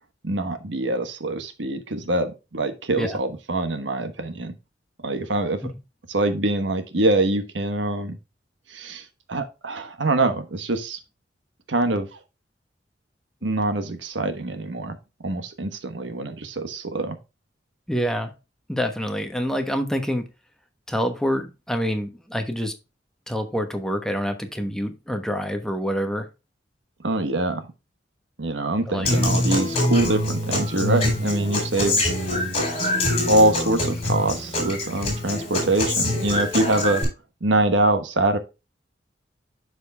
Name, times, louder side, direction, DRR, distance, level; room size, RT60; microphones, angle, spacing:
voice 1, 0.2-4.5 5.0-5.6 6.1-8.2 8.7-11.0 11.7-12.1 13.4-15.0 15.2-17.2 27.0-27.7 28.4-32.0 33.3-37.1 37.4-38.4, right 2 dB, 85° right, 9 dB, 1.2 m, -24 dB
voice 2, 17.9-18.3 18.7-20.3 20.9-22.7 23.3-26.3 28.9-29.1, equal, 5° left, 5 dB, 1.1 m, -26 dB
Human voice / Acoustic guitar, 29.0-37.0, left 1 dB, 35° left, 3.9 m, -24 dB
12.0 x 5.0 x 2.3 m, 0.27 s
head